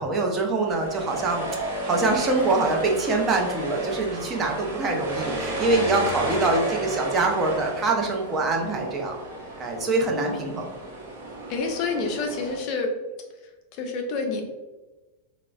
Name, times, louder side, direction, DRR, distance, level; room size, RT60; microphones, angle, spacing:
voice 1, 0.0-9.2 9.6-10.7, right 3 dB, 25° right, 1 dB, 0.5 m, -24 dB
sound 1, 0.7-12.6, right 1 dB, 55° right, 0.8 m, -33 dB
voice 2, 10.1-10.6 11.5-12.9 13.7-14.5, left 4 dB, 40° left, 3 dB, 0.4 m, -29 dB
3.9 x 2.0 x 2.3 m, 1.1 s
figure-of-eight pair, 90°, 0 cm